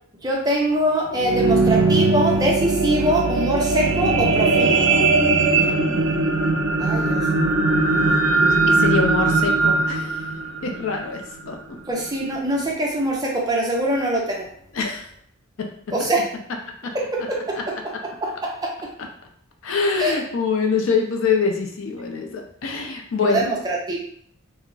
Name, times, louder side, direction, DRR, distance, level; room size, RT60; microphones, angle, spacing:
voice 1, 0.2-4.9 6.8-7.2 11.9-14.5 15.9-16.2 16.9-17.9 18.2-18.9 20.0-20.2 23.2-24.0, right 1 dB, 20° right, -2 dB, 0.5 m, -23 dB
sound 1, 0.9-11.5 12.1-12.2, right 3 dB, 75° right, 0.5 m, -20 dB
voice 2, 5.6-6.6 8.7-10.2 10.6-11.2 11.5-11.6 14.7-15.0 15.6-15.7 19.6-23.5, left 4 dB, 65° left, 3 dB, 0.5 m, -24 dB
2.3 x 2.1 x 3.8 m, 0.63 s
head